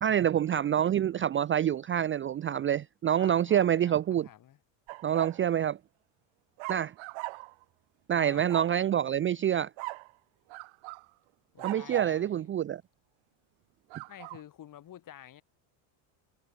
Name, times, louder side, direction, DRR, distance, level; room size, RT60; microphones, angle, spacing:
voice 1, 0.0-4.3 5.0-5.8 6.7-6.9 8.1-9.7 11.6-12.8, right 10 dB, 25° right, 0.6 m, -27 dB
voice 2, 3.2-4.6 8.1-8.5 11.5-12.5 14.1-15.4, left 11 dB, 40° left, 4.4 m, -49 dB
sound 1, 4.9-5.4 6.6-7.6 8.5-8.8 9.8-10.1 10.5-11.1 11.6-12.2 13.9-14.4, right 24 dB, 65° right, 2.0 m, -40 dB
cardioid pair, 135°, 50 cm